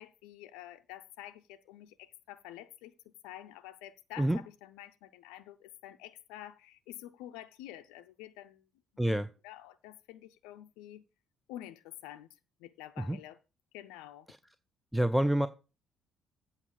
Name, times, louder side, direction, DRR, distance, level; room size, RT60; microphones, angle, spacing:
voice 1, 0.0-2.9 3.2-8.6 9.4-11.0 11.5-12.3 12.6-13.4 13.7-14.3, left 13 dB, 70° left, 0.5 m, -48 dB
voice 2, 9.0-9.3 13.1-13.2 14.3-14.4 14.9-15.5, right 1 dB, ahead, 0.6 m, -27 dB
8.4 x 5.3 x 6.7 m
figure-of-eight pair, 45°, 0 cm